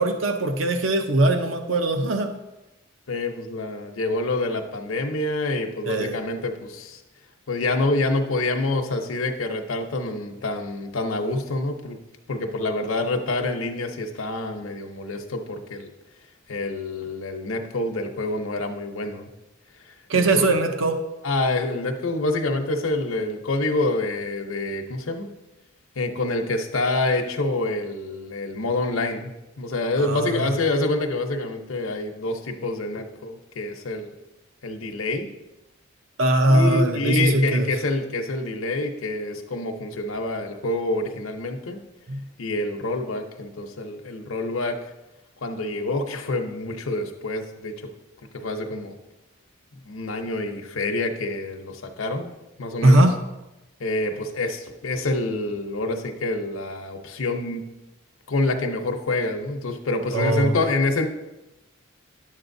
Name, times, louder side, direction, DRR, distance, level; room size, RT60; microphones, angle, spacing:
voice 1, 0.0-2.3 5.9-6.1 20.1-21.0 30.0-30.5 36.2-37.7 42.1-42.2 52.8-53.2 60.1-60.6, right 2 dB, 70° right, 6 dB, 0.6 m, -20 dB
voice 2, 3.1-7.0 7.5-12.0 12.3-15.9 16.5-19.3 19.8-20.5 21.2-25.3 26.0-34.1 34.6-35.3 36.5-41.8 42.4-44.8 45.4-47.9 48.3-49.0 49.9-52.3 52.6-53.0 53.8-57.6 58.3-61.1, left 2 dB, 80° left, 3 dB, 0.8 m, -27 dB
11.0 x 7.3 x 2.6 m, 0.98 s
head